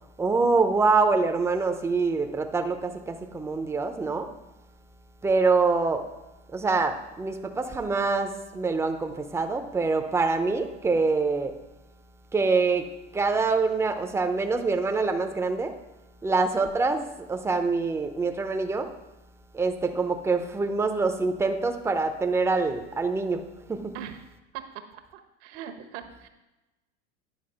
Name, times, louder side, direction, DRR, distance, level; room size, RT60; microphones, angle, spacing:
voice 1, 0.2-4.3 5.2-6.1 6.5-11.6 12.3-15.8 16.2-18.9 19.5-24.0, right 4 dB, 5° right, 6 dB, 0.7 m, -25 dB
voice 2, 25.1-26.3, right 9 dB, 65° right, 6 dB, 1.2 m, -40 dB
9.8 x 5.1 x 5.0 m, 1.0 s
hypercardioid pair, 105°, 37 cm